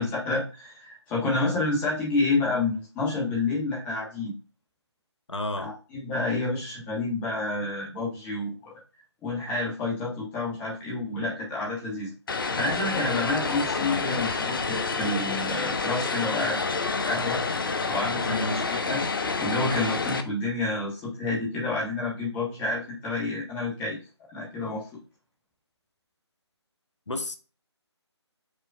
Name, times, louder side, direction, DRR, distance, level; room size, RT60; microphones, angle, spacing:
voice 1, 0.0-4.3 5.6-8.5 9.2-12.1 12.5-16.6 17.1-17.4 17.9-19.0 19.4-24.0 24.3-24.9, left 2 dB, 10° left, 1.3 m, -29 dB
voice 2, 5.3-5.7 18.2-18.7 27.1-27.4, left 1 dB, 85° left, 0.8 m, -31 dB
Vehicle, 12.3-20.2, left 4 dB, 50° left, 0.6 m, -28 dB
5.3 x 4.1 x 2.4 m
figure-of-eight pair, 155°, 15 cm